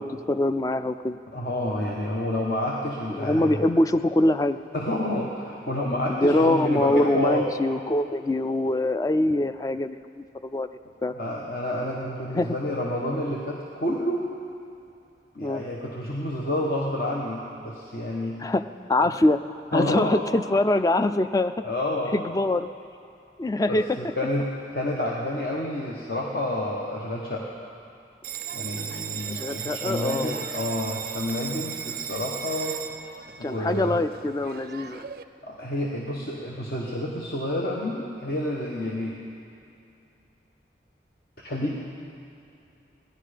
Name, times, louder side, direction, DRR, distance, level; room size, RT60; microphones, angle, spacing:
voice 1, 0.0-1.2 3.1-4.6 6.1-10.7 11.0-11.1 12.4-12.6 15.4-15.6 18.4-19.4 19.7-21.5 22.1-22.7 23.4-24.0 29.3-30.4 33.4-35.1, left 1 dB, 20° left, 11 dB, 0.3 m, -24 dB
voice 2, 1.3-3.6 4.7-7.5 11.1-14.3 15.3-18.4 19.7-20.2 21.6-22.2 23.7-27.5 28.5-32.8 33.4-34.0 35.4-39.2 41.4-41.8, left 1 dB, 55° left, -3 dB, 1.1 m, -29 dB
Bell, 28.2-35.2, right 8 dB, 50° right, 0.4 m, -36 dB
17.0 x 11.0 x 5.0 m, 2.7 s
head